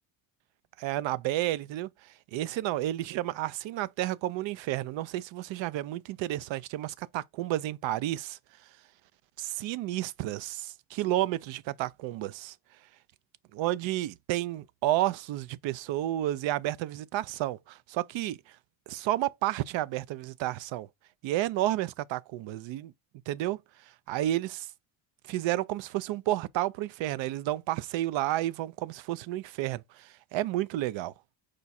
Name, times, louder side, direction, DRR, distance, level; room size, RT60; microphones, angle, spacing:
voice 1, 0.8-1.9 2.3-8.4 9.4-12.5 13.5-18.4 18.9-20.9 21.2-22.9 23.3-23.6 24.1-24.7 25.3-31.1, right 14 dB, 70° right, 0.5 m, -31 dB
5.0 x 2.3 x 4.1 m
cardioid pair, 90°, 47 cm